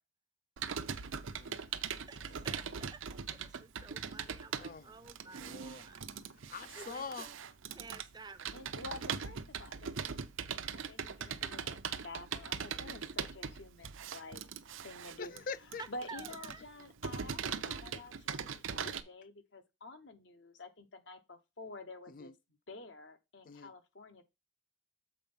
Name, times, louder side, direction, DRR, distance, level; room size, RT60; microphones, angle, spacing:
Computer keyboard, 0.6-19.0, right 7 dB, 75° right, 0.6 m, -40 dB
voice 1, 1.3-2.4 4.6-4.9 5.3-6.0 6.5-7.3 15.2-15.8 17.6-18.0 18.8-18.9 22.1-22.3 23.5-23.7, left 5 dB, 45° left, 0.4 m, -46 dB
voice 2, 2.1-3.0 3.3-6.0 6.8-7.4 7.7-8.4 15.8-16.6, right 4 dB, 20° right, 0.5 m, -51 dB
voice 3, 8.5-10.1 10.7-14.4 14.8-15.3 15.9-22.3 22.7-24.2, left 2 dB, 60° left, 1.0 m, -49 dB
7.4 x 4.4 x 5.5 m
head